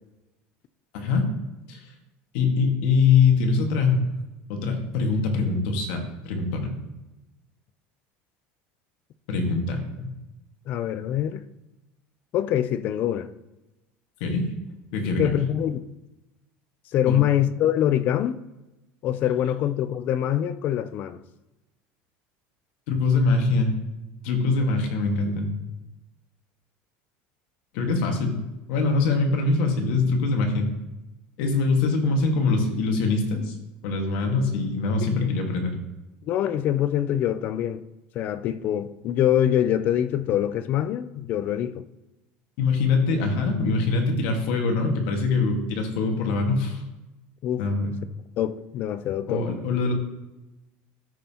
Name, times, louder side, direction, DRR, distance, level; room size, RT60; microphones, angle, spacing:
voice 1, 0.9-1.2 1.7-1.8 2.3-4.0 4.5-6.7 9.3-10.1 14.2-14.5 14.9-15.2 17.0-17.1 22.9-23.7 24.2-25.5 27.7-28.4 28.7-30.7 31.4-33.5 33.8-35.7 42.6-46.8 47.6-47.9 49.3-49.9, left 4 dB, 65° left, 1.6 m, -23 dB
voice 2, 10.7-11.5 12.3-13.3 15.2-15.8 16.9-18.4 19.0-21.2 35.0-35.1 36.3-37.8 38.1-41.8 47.4-47.6 48.4-49.4, left 11 dB, 35° left, 0.4 m, -24 dB
13.0 x 5.5 x 2.9 m
cardioid pair, 170°, 5 cm